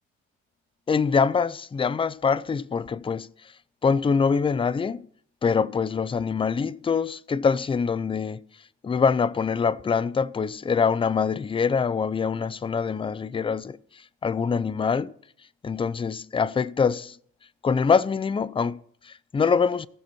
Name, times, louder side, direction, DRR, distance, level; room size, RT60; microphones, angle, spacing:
voice 1, 0.9-3.5 3.8-5.1 5.4-8.4 8.8-15.1 15.6-17.2 17.6-19.9, left 5 dB, 20° left, 0.4 m, -24 dB
18.0 x 6.1 x 4.4 m
cardioid pair, 90°, 30 cm